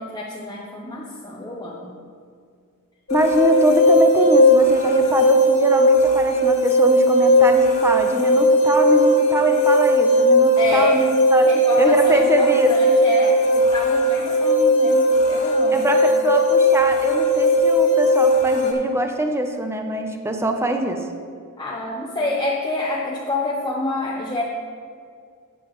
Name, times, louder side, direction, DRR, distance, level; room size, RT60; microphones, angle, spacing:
voice 1, 0.0-2.0 10.6-11.1 11.4-16.1 21.6-24.4, left 2 dB, 20° left, -3 dB, 0.8 m, -27 dB
sound 1, 3.1-18.7, equal, 65° left, 2.3 m, -17 dB
voice 2, 3.1-11.5 11.8-12.7 15.7-21.0, right 1 dB, 10° right, 4 dB, 0.7 m, -22 dB
13.5 x 8.5 x 3.1 m, 2.2 s
head